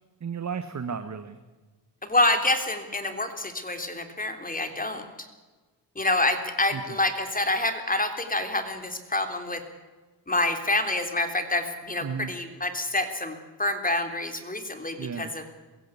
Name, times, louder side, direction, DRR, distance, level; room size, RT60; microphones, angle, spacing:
voice 1, 0.2-1.4 6.7-7.0 12.0-12.3 15.0-15.3, right 6 dB, 40° right, 10 dB, 1.4 m, -34 dB
voice 2, 2.0-5.0 5.9-9.6 10.3-15.4, left 2 dB, 20° left, 7 dB, 3.5 m, -27 dB
22.0 x 16.0 x 8.4 m, 1.3 s
cardioid pair, 70°, 43 cm